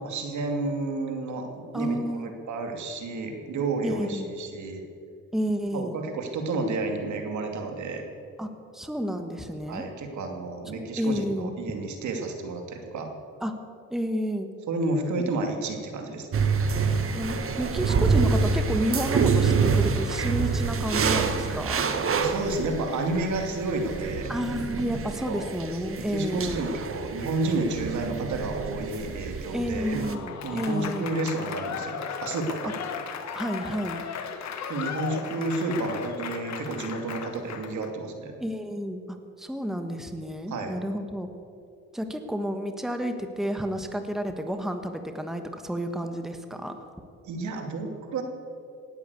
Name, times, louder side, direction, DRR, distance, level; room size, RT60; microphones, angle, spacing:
voice 1, 0.0-4.8 5.7-8.0 9.7-13.1 14.7-16.5 22.2-24.3 25.3-25.4 26.0-30.0 30.4-32.7 34.7-38.3 40.5-40.7 47.2-48.2, right 2 dB, 70° right, 4 dB, 2.6 m, -31 dB
voice 2, 1.7-2.3 3.8-4.3 5.3-6.0 8.4-9.9 10.7-11.8 13.4-13.5 13.9-14.5 17.1-21.9 24.3-26.7 29.5-31.1 33.3-34.0 38.4-41.3 41.9-46.8, equal, ahead, 7 dB, 1.3 m, -31 dB
sound 1, 16.3-30.2, right 5 dB, 45° right, 1.5 m, -27 dB
Applause / Crowd, 29.7-37.9, left 7 dB, 65° left, 1.6 m, -36 dB
18.0 x 9.2 x 8.3 m, 2.5 s
cardioid pair, 90°, 30 cm